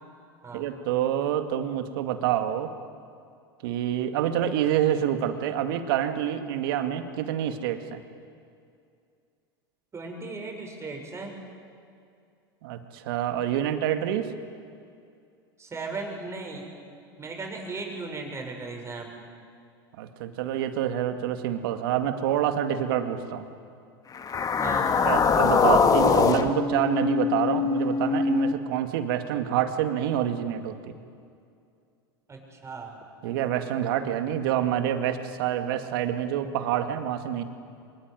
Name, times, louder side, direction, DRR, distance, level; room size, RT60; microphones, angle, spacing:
voice 1, 0.5-2.7 3.6-8.0 12.6-14.3 20.0-23.5 25.0-30.9 33.2-37.4, right 10 dB, 65° right, 7 dB, 2.2 m, -27 dB
voice 2, 9.9-11.4 15.6-16.7 17.2-19.1 24.6-25.1 32.3-32.9, right 3 dB, 20° right, 2 dB, 6.4 m, -36 dB
sound 1, 24.1-28.5, left 5 dB, 30° left, 2.0 m, -23 dB
24.0 x 22.5 x 9.7 m, 2.4 s
hypercardioid pair, 90°, 13 cm